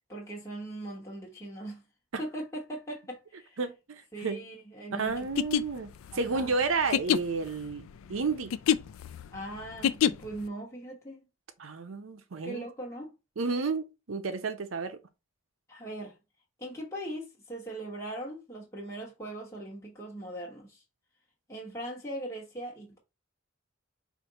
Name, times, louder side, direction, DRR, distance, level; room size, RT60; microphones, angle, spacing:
voice 1, 0.1-1.8 2.2-3.6 4.1-5.2 6.1-6.5 9.3-11.2 12.4-13.1 15.7-16.1 16.6-20.8 21.5-23.0, right 1 dB, 15° left, 1.2 m, -40 dB
voice 2, 3.6-4.4 4.9-7.8 8.1-8.5 11.6-12.7 13.4-15.0, right 4 dB, 80° right, 0.6 m, -31 dB
sound 1, 5.2-10.5, left 9 dB, 85° left, 0.3 m, -28 dB
5.0 x 2.6 x 4.0 m
head